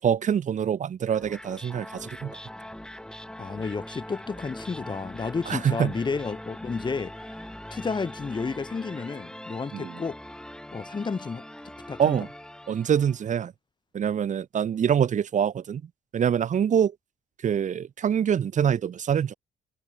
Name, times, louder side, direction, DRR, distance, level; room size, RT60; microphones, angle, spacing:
voice 1, 0.0-2.4 5.5-5.9 9.7-10.0 12.0-12.3 12.7-13.5 13.9-15.8 16.1-16.9 17.4-19.3, right 8 dB, 45° right, 6.7 m, -25 dB
sound 1, 1.1-13.3, left 1 dB, 5° left, 6.7 m, -42 dB
voice 2, 3.4-7.1 7.7-10.2 10.7-11.4 11.9-12.2, left 4 dB, 25° left, 7.8 m, -31 dB
cardioid pair, 110°, 17 cm